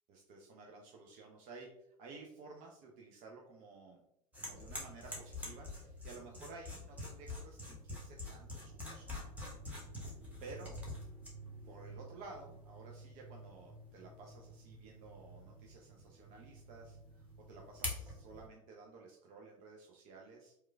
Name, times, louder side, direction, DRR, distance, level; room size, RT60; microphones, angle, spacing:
voice 1, 0.1-4.0 4.4-9.3 10.4-10.8 11.7-20.5, right 3 dB, 40° right, 0 dB, 0.4 m, -54 dB
sound 1, 4.3-18.5, left 1 dB, 5° right, 0.8 m, -47 dB
2.9 x 2.2 x 2.2 m, 0.78 s
hypercardioid pair, 85°, 20 cm